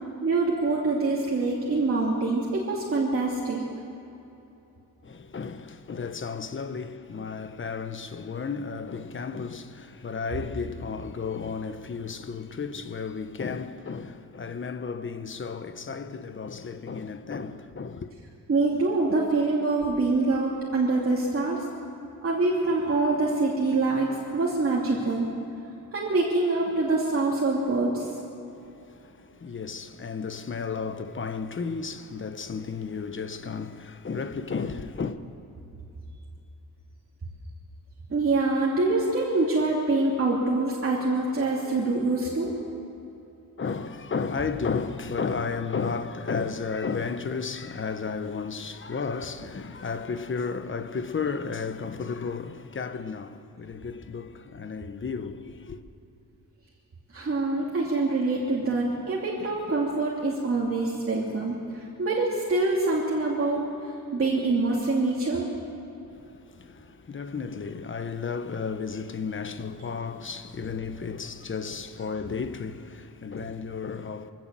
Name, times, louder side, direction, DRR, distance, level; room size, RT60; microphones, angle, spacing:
voice 1, 0.2-3.6 18.5-21.6 22.2-25.3 25.9-28.1 38.1-42.5 57.1-65.5, right 3 dB, 35° right, 2.8 m, -25 dB
voice 2, 5.0-18.1 28.9-35.2 43.6-55.8 66.2-74.3, left 5 dB, 35° left, 1.0 m, -33 dB
23.0 x 16.5 x 7.6 m
wide cardioid pair, 135°, 36 cm